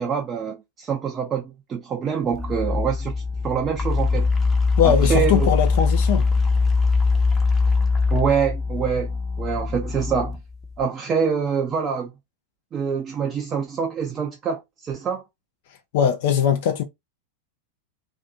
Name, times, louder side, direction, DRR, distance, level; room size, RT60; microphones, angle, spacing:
voice 1, 0.0-4.3 4.8-5.5 8.1-10.4 10.8-12.1 12.7-15.2, right 6 dB, 25° right, 0.4 m, -25 dB
sound 1, 2.2-10.9, left 4 dB, 15° left, 0.7 m, -22 dB
voice 2, 4.7-6.3 15.9-16.8, left 9 dB, 50° left, 0.4 m, -20 dB
2.6 x 2.5 x 2.4 m
figure-of-eight pair, 90°, 0 cm